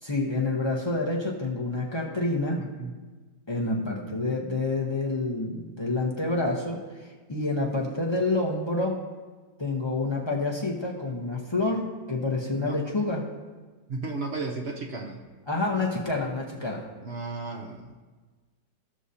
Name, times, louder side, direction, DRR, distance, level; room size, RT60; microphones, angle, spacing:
voice 1, 0.0-2.6 3.5-9.0 9.6-13.2 15.5-16.9, left 2 dB, 40° left, -2 dB, 0.4 m, -28 dB
voice 2, 13.9-15.2 17.0-17.9, right 3 dB, 60° right, 1 dB, 0.6 m, -34 dB
16.0 x 6.4 x 2.7 m, 1.3 s
omnidirectional pair, 2.0 m